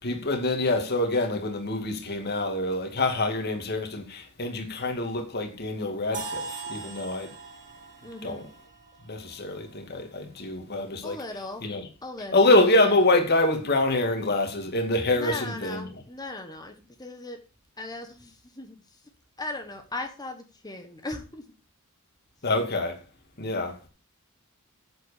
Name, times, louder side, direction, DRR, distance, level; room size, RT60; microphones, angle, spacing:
voice 1, 0.0-7.3 8.2-8.5 9.0-11.2 11.6-11.8 12.3-15.8 22.4-23.0 23.4-23.9, left 2 dB, 50° left, 2.3 m, -25 dB
sound 1, 6.1-10.1, right 4 dB, 35° right, 2.3 m, -40 dB
voice 2, 8.0-8.4 11.0-11.6 12.0-12.5 15.1-17.4 17.8-19.1 19.4-21.4, left 2 dB, 20° left, 1.3 m, -38 dB
8.1 x 7.8 x 6.6 m
head